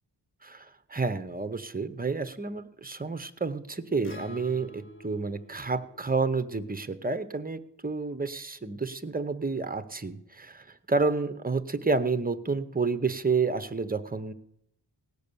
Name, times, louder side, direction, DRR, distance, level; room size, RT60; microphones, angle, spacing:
voice 1, 0.4-14.3, right 4 dB, 20° right, 11 dB, 0.7 m, -30 dB
Acoustic guitar, 4.0-8.3, left 1 dB, 30° left, 1.1 m, -50 dB
18.0 x 6.7 x 6.8 m, 0.76 s
wide cardioid pair, 105°, 43 cm